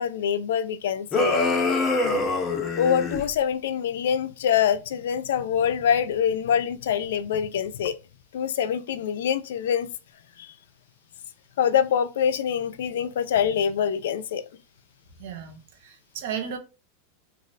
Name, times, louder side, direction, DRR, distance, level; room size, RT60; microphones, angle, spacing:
voice 1, 0.0-1.4 2.8-8.0 8.3-9.9 10.4-10.5 11.6-14.4, left 8 dB, 85° left, 0.3 m, -25 dB
sound 1, 1.1-3.2, left 3 dB, 20° left, 0.7 m, -24 dB
voice 2, 15.2-16.6, right 8 dB, 65° right, 0.7 m, -34 dB
3.0 x 2.4 x 2.6 m
supercardioid pair, 145°, 0 cm